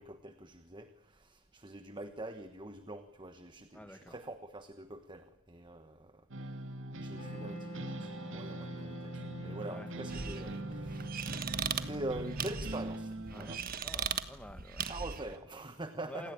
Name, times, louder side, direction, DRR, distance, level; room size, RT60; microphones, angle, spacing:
voice 1, 0.0-6.1 7.0-11.3 11.7-13.6 14.9-16.3, right 2 dB, 20° right, 9 dB, 1.2 m, -44 dB
voice 2, 3.7-4.2 9.6-9.9 13.3-13.5 13.8-14.8 16.1-16.3, left 1 dB, 5° left, 9 dB, 1.7 m, -48 dB
sound 1, 6.3-13.6, right 2 dB, 60° right, 2.2 m, -42 dB
Wind instrument woodwind instrument, 7.2-14.1, left 1 dB, 30° left, 7.5 m, -48 dB
sound 2, 10.1-15.4, right 7 dB, 40° right, 1.4 m, -39 dB
28.0 x 19.0 x 8.9 m, 0.90 s
head